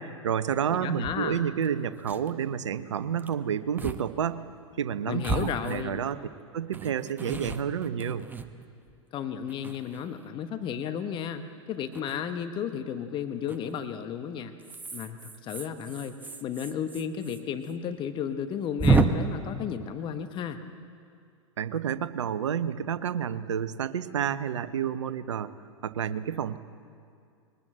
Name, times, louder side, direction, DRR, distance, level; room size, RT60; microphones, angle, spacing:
voice 1, 0.0-4.4 4.8-6.2 6.5-8.2 21.6-25.5 25.8-26.6, right 8 dB, 70° right, 14 dB, 0.9 m, -30 dB
voice 2, 0.7-1.4 5.0-6.0 9.1-11.4 11.7-14.5 14.9-16.1 16.4-20.6, left 8 dB, 30° left, 8 dB, 1.2 m, -33 dB
sound 1, 1.0-1.1 1.6-1.7 1.9-2.3 3.2-3.3 3.8-4.0 4.3-4.4 5.2-6.2 6.7-8.9 9.5-10.3 11.9-12.2 13.5-13.8 14.6-17.4 17.6-17.7 18.0-18.1 18.8-19.0, right 3 dB, 10° right, 1.1 m, -30 dB
22.0 x 19.5 x 7.7 m, 2.3 s
figure-of-eight pair, 95°, 16 cm